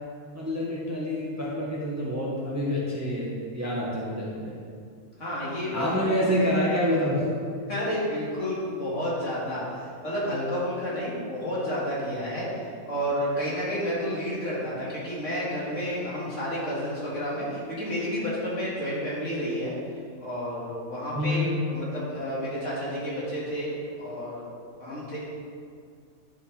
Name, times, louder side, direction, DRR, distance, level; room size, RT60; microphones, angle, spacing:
voice 1, 0.3-3.3 3.5-4.5 5.7-7.2 21.1-21.6, equal, 10° right, -6 dB, 1.3 m, -27 dB
voice 2, 5.2-6.1 7.7-19.7 20.2-25.2, equal, 55° left, -8 dB, 2.8 m, -31 dB
11.0 x 5.3 x 4.3 m, 2.2 s
omnidirectional pair, 1.5 m